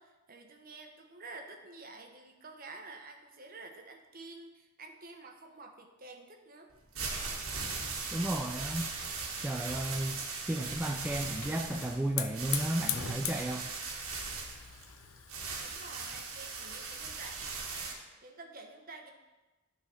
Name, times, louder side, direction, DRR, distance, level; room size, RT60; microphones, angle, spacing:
voice 1, 0.0-6.7 15.6-17.5 18.2-19.1, right 3 dB, 40° right, 3 dB, 1.0 m, -49 dB
sound 1, 6.7-17.9, right 4 dB, 60° right, 1.4 m, -39 dB
voice 2, 8.1-8.9 9.4-13.7, right 1 dB, 10° right, 1 dB, 0.3 m, -34 dB
Hiss / Fire, 10.5-17.3, left 9 dB, 65° left, 0.6 m, -42 dB
11.5 x 4.0 x 5.6 m, 1.2 s
head